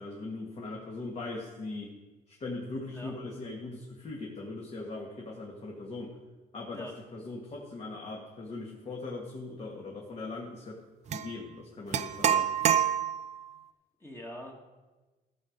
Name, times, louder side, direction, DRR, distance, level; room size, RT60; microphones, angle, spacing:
voice 1, 0.0-1.9 2.3-6.1 6.5-10.8 11.1-12.5, left 2 dB, 40° left, -2 dB, 1.8 m, -40 dB
sound 1, 11.1-11.3 11.9-13.4, right 9 dB, 40° right, 0.5 m, -27 dB
voice 2, 14.0-14.5, equal, 15° left, 0 dB, 1.7 m, -43 dB
14.0 x 6.5 x 5.1 m, 1.2 s
cardioid pair, 110°, 17 cm